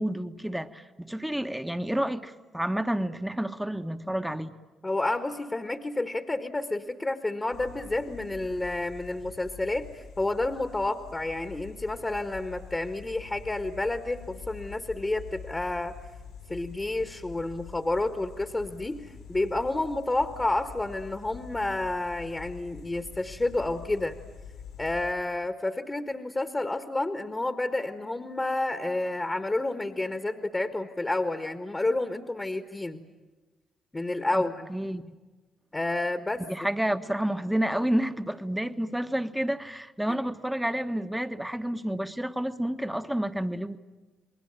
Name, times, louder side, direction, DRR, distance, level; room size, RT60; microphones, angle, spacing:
voice 1, 0.0-4.5 34.3-35.1 36.5-43.8, right 1 dB, 5° right, 9 dB, 1.3 m, -30 dB
voice 2, 4.8-15.9 16.5-24.2 24.8-33.0 33.9-34.7 35.7-36.4, left 2 dB, 25° left, 8 dB, 1.6 m, -30 dB
sound 1, 7.5-25.2, left 7 dB, 80° left, 4.5 m, -46 dB
29.0 x 21.0 x 9.0 m, 1.2 s
hypercardioid pair, 45°, 0 cm